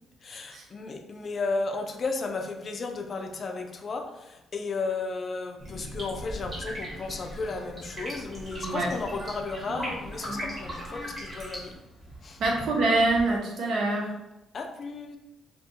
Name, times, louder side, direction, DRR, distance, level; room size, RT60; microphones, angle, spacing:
voice 1, 0.2-11.7 12.2-12.4 14.5-15.2, left 3 dB, 45° left, 5 dB, 0.3 m, -34 dB
sound 1, 5.6-11.7, equal, 40° right, 1.3 m, -39 dB
sound 2, 6.0-13.4, equal, 5° left, 0.7 m, -45 dB
voice 2, 12.4-14.1, right 2 dB, 70° right, 0 dB, 0.6 m, -25 dB
2.7 x 2.2 x 2.7 m, 0.92 s
cardioid pair, 90°, 0 cm